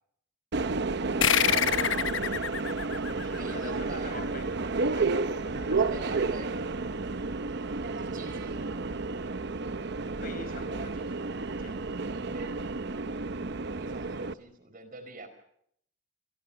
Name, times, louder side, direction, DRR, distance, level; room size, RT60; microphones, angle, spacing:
Subway metro underground, 0.5-14.3, right 3 dB, 65° right, 0.8 m, -31 dB
sound 1, 1.2-4.2, left 8 dB, 85° left, 1.0 m, -28 dB
voice 1, 1.3-2.1 3.2-4.5 4.9-6.5 10.2-11.8, left 3 dB, 50° left, 9 dB, 5.3 m, -45 dB
voice 2, 3.4-4.2 5.7-6.5 7.5-8.8 12.3-12.5 13.7-15.3, right 2 dB, 50° right, 10 dB, 4.8 m, -45 dB
28.0 x 23.0 x 5.8 m, 0.71 s
head